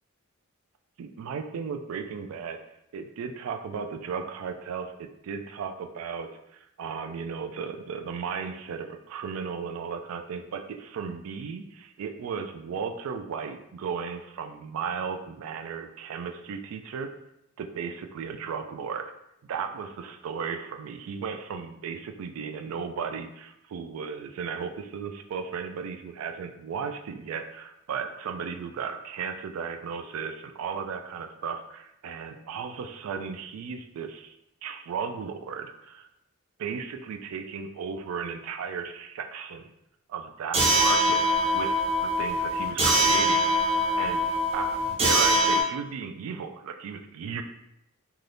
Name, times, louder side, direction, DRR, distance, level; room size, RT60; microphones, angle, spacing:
voice 1, 1.0-2.6 2.9-17.1 17.6-19.1 19.5-34.4 34.6-36.1 36.6-39.6 40.1-41.2 41.5-41.8 42.2-43.4 44.0-44.2 44.5-47.4, right 6 dB, 70° right, 6 dB, 0.3 m, -35 dB
sound 1, 40.5-45.6, equal, 25° right, 0.7 m, -23 dB
2.6 x 2.3 x 3.3 m, 0.83 s
head